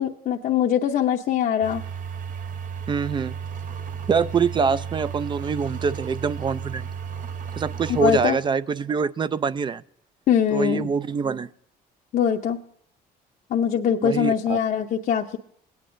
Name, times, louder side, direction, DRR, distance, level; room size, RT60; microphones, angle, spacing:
voice 1, 0.0-1.8 8.0-8.4 10.3-10.9 12.1-12.6 13.5-15.4, left 8 dB, 55° left, 1 dB, 0.7 m, -22 dB
sound 1, 1.6-8.3, right 7 dB, 50° right, 0.8 m, -33 dB
voice 2, 2.9-3.3 4.1-6.9 7.6-9.8 10.5-11.5 14.0-14.6, right 5 dB, 30° right, 16 dB, 0.4 m, -24 dB
18.0 x 9.5 x 2.5 m, 0.65 s
cardioid pair, 110°, 17 cm